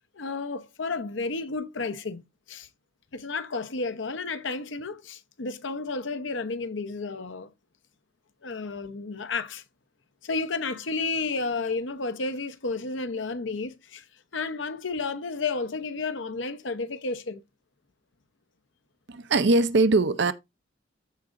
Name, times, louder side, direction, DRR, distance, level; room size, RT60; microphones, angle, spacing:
voice 1, 0.2-2.2 2.5-2.7 3.1-7.5 8.4-9.6 10.2-14.0 14.3-17.4, left 3 dB, 75° left, 0.8 m, -32 dB
voice 2, 19.1-20.3, right 3 dB, 65° right, 0.6 m, -21 dB
14.0 x 4.9 x 2.6 m
head